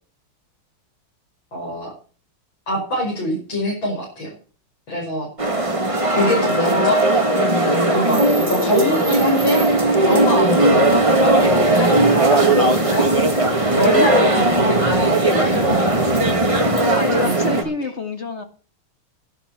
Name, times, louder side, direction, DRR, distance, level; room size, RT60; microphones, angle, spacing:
voice 1, 1.5-1.9 2.7-4.3 4.9-5.3 6.1-7.0 7.9-9.6 10.0-13.1 13.7-16.6 17.2-17.5, left 1 dB, 65° left, -4 dB, 6.7 m, -24 dB
sound 1, 5.4-17.6, right 2 dB, 15° right, 1.6 m, -17 dB
voice 2, 8.6-8.9 16.6-18.4, left 3 dB, 35° left, 6 dB, 1.9 m, -28 dB
11.5 x 11.5 x 5.9 m, 0.40 s
omnidirectional pair, 2.4 m